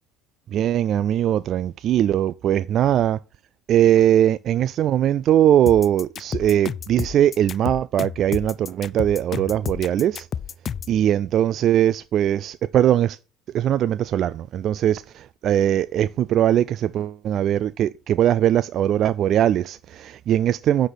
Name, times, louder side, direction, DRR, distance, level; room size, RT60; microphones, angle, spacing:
voice 1, 0.5-3.2 3.7-10.3 10.9-13.2 13.5-20.9, right 11 dB, 50° right, 0.3 m, -20 dB
sound 1, 5.7-11.0, left 8 dB, 40° left, 0.4 m, -31 dB
9.7 x 4.1 x 6.2 m
supercardioid pair, 85°, 0 cm